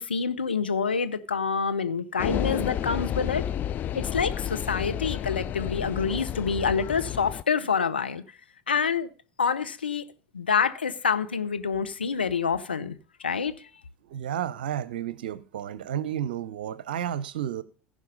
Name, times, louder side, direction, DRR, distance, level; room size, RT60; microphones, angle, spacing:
voice 1, 0.0-3.4 3.9-8.2 8.7-9.1 9.4-10.0 10.3-13.5, left 6 dB, 80° left, 0.7 m, -27 dB
sound 1, 2.2-7.4, left 11 dB, 35° left, 0.4 m, -31 dB
voice 2, 14.1-17.6, right 10 dB, 65° right, 0.7 m, -32 dB
15.0 x 5.2 x 5.3 m
figure-of-eight pair, 75°, 5 cm